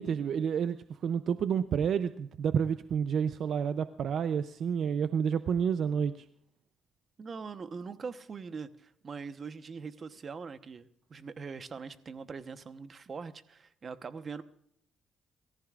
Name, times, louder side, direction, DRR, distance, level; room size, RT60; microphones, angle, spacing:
voice 1, 0.0-6.3, right 7 dB, 65° right, 12 dB, 0.5 m, -30 dB
voice 2, 7.2-14.4, right 5 dB, 45° right, 11 dB, 1.0 m, -42 dB
28.0 x 14.5 x 2.5 m, 0.70 s
cardioid pair, 90°, 0 cm